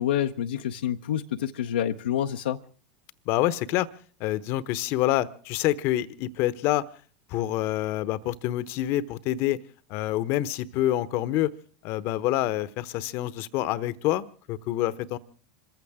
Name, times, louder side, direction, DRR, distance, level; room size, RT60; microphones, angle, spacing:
voice 1, 0.0-2.6, left 10 dB, 75° left, 0.7 m, -27 dB
voice 2, 3.3-3.9 4.2-6.8 7.3-9.6 9.9-11.5 11.8-15.2, left 14 dB, 55° left, 1.0 m, -27 dB
27.0 x 15.0 x 3.5 m
hypercardioid pair, 85°, 5 cm